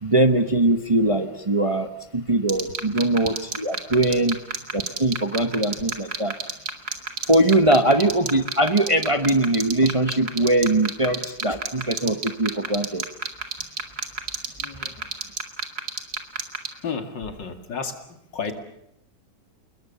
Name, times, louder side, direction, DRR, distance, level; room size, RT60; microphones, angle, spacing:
voice 1, 0.0-4.4 4.7-6.3 7.3-13.0, right 1 dB, 25° right, 8 dB, 0.9 m, -21 dB
sound 1, 2.5-16.7, right 4 dB, 60° right, 2.8 m, -27 dB
voice 2, 14.6-15.2 16.8-18.5, left 5 dB, 85° left, 7 dB, 2.9 m, -33 dB
29.5 x 20.5 x 6.9 m, 0.78 s
omnidirectional pair, 1.9 m